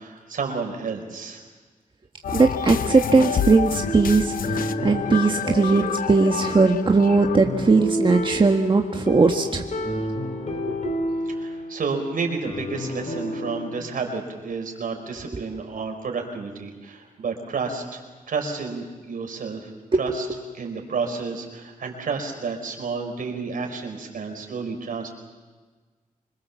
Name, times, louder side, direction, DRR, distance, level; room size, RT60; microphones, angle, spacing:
voice 1, 0.0-1.4 11.2-19.7 20.0-20.3 20.6-25.1, right 4 dB, 80° right, 3 dB, 4.7 m, -31 dB
sound 1, 2.2-7.4, left 8 dB, 90° left, 0.8 m, -29 dB
voice 2, 2.3-9.9 10.7-10.8 15.3-15.4 19.9-20.0, right 3 dB, 35° right, 3 dB, 1.5 m, -19 dB
sound 2, 3.1-13.8, left 1 dB, 55° left, 4.2 m, -31 dB
26.0 x 22.0 x 7.2 m, 1.4 s
wide cardioid pair, 90°, 14 cm